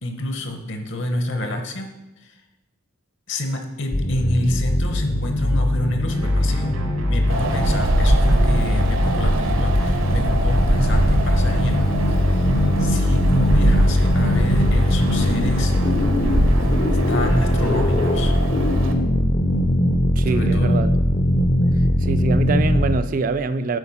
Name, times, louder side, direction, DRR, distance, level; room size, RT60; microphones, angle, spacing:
voice 1, 0.0-2.0 2.2-2.4 3.3-6.8 7.1-12.5 12.8-15.7 17.1-18.3 20.2-20.8, left 1 dB, 60° left, 1.0 m, -28 dB
sound 1, 3.9-23.0, left 1 dB, 35° left, 0.5 m, -20 dB
sound 2, 6.1-18.4, right 1 dB, 90° right, 1.8 m, -32 dB
Wind, 7.3-18.9, right 1 dB, 75° right, 0.8 m, -22 dB
voice 2, 20.2-20.9 22.0-23.8, right 3 dB, 40° right, 0.3 m, -24 dB
8.3 x 4.6 x 5.7 m
head